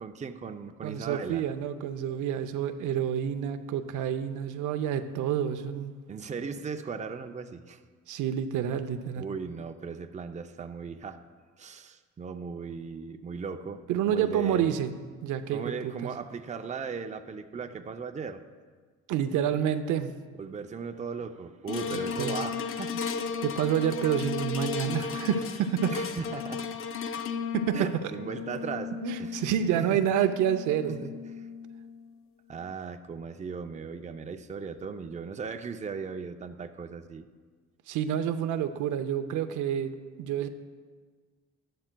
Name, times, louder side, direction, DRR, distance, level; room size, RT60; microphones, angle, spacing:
voice 1, 0.0-1.4 6.1-7.8 9.2-11.2 11.6-14.7 15.5-18.4 20.4-23.3 25.9-26.7 27.7-28.9 29.2-29.4 29.7-30.1 30.9-31.5 32.5-37.3, right 5 dB, 25° right, 7 dB, 0.5 m, -37 dB
voice 2, 0.8-6.0 8.1-9.2 13.9-14.9 15.2-16.1 19.1-20.2 21.9-22.4 23.4-26.0 27.5-28.1 29.0-31.0 37.9-40.5, right 9 dB, 80° right, 9 dB, 0.6 m, -28 dB
sound 1, 21.7-32.1 32.6-32.7, left 6 dB, 45° left, 0.5 m, -35 dB
12.0 x 11.0 x 2.2 m, 1.5 s
cardioid pair, 90°, 30 cm